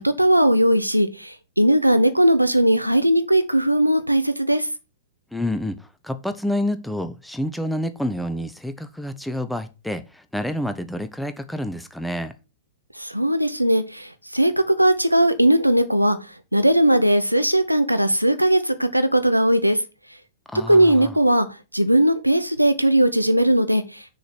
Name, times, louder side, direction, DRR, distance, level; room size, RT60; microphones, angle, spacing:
voice 1, 0.0-4.7 13.0-14.1 14.3-16.2 16.5-19.8 20.5-21.5 21.7-23.8, right 1 dB, 90° right, 0.9 m, -18 dB
voice 2, 5.3-5.8 6.0-12.3 20.5-21.1, left 1 dB, ahead, 0.8 m, -28 dB
6.5 x 5.1 x 5.9 m
figure-of-eight pair, 100°, 0 cm